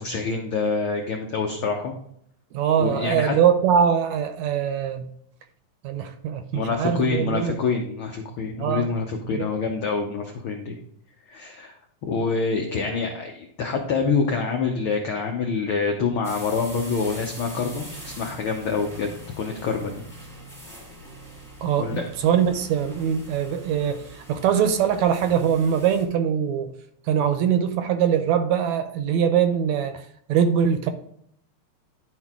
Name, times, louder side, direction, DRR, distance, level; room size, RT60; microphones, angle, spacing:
voice 1, 0.0-1.9 2.8-3.3 6.5-10.7 11.3-11.7 12.0-19.1 19.4-20.0 21.8-22.0, left 4 dB, 90° left, 2 dB, 1.1 m, -26 dB
voice 2, 2.5-5.1 5.8-7.5 8.6-8.9 9.3-9.5 21.6-24.0 24.3-26.7 27.1-30.0 30.3-30.9, right 8 dB, 75° right, 8 dB, 1.8 m, -22 dB
sound 1, 16.2-26.0, equal, 10° right, 0.9 m, -43 dB
11.0 x 4.6 x 3.6 m, 0.68 s
omnidirectional pair, 3.5 m